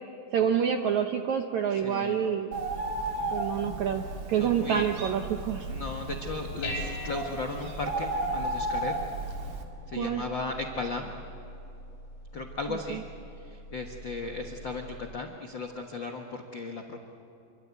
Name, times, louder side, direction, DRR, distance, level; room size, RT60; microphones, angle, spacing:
voice 1, 0.3-2.6 3.3-5.7 9.9-10.2 12.7-13.0, right 8 dB, 75° right, 5 dB, 1.7 m, -28 dB
voice 2, 1.7-2.3 4.4-4.9 5.7-8.9 9.9-11.1 12.3-13.0 13.4-17.0, left 3 dB, 80° left, 2 dB, 1.0 m, -36 dB
Bird, 2.5-9.6, right 2 dB, 50° right, 3.0 m, -34 dB
Dishes pots and pans, 5.9-15.2, left 1 dB, 55° left, 6.4 m, -43 dB
27.0 x 24.0 x 8.3 m, 2.9 s
omnidirectional pair, 4.5 m